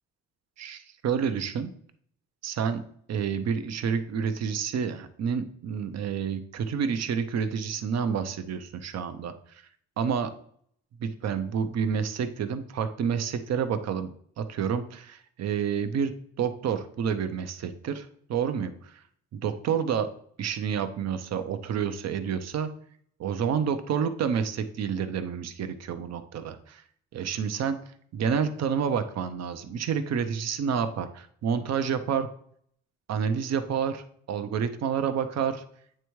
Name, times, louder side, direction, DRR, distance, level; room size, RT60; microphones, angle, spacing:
voice 1, 0.6-1.7 2.4-9.3 10.0-10.3 11.0-18.9 19.3-20.1 20.4-22.7 23.2-26.8 27.1-27.8 28.1-32.3 33.1-35.6, right 7 dB, 60° right, 10 dB, 0.8 m, -29 dB
8.7 x 3.4 x 3.1 m, 0.62 s
cardioid pair, 90°, 30 cm